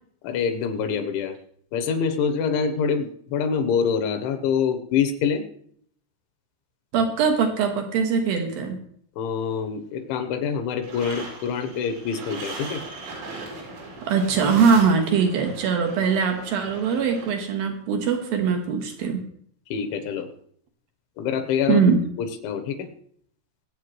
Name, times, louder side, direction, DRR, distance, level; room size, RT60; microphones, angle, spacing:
voice 1, 0.2-1.3 1.7-5.4 9.2-12.8 19.7-20.3 21.2-21.9 22.2-22.9, left 6 dB, 80° left, 8 dB, 3.3 m, -25 dB
voice 2, 6.9-8.8 14.1-19.2 21.7-22.0, right 6 dB, 65° right, 4 dB, 2.5 m, -21 dB
sound 1, 10.8-17.3, right 2 dB, 90° right, 6.6 m, -38 dB
24.0 x 8.4 x 3.2 m, 0.63 s
omnidirectional pair, 5.6 m